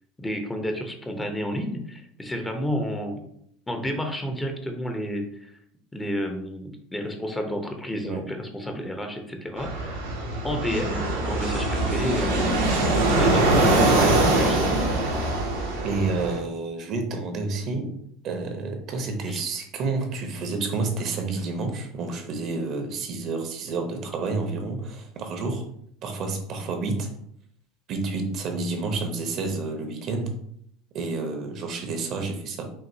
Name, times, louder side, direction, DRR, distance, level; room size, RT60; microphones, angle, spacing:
voice 1, 0.2-3.2 3.7-5.5 5.9-10.0 10.4-12.7 13.1-14.8 19.3-19.4, equal, 15° left, 4 dB, 0.8 m, -31 dB
Fixed-wing aircraft airplane, 9.6-16.4, right 2 dB, 85° right, 1.0 m, -23 dB
voice 2, 15.8-17.9 18.2-25.6 26.0-27.1 27.9-30.3 30.9-32.7, right 3 dB, 50° right, 5 dB, 0.8 m, -29 dB
5.5 x 2.6 x 2.7 m, 0.69 s
hypercardioid pair, 75°, 0 cm